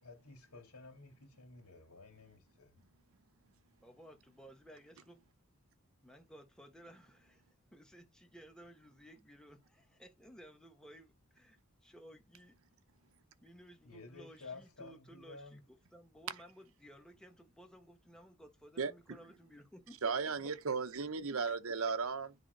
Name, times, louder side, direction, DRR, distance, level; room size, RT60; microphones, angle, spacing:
voice 1, 0.0-2.8 13.8-15.6, left 3 dB, 85° left, 3.0 m, -53 dB
voice 2, 3.8-5.2 6.0-7.4 7.7-12.5 13.4-20.5, equal, 5° left, 1.2 m, -57 dB
voice 3, 20.0-22.3, right 5 dB, 65° right, 0.8 m, -35 dB
9.9 x 3.7 x 5.3 m
head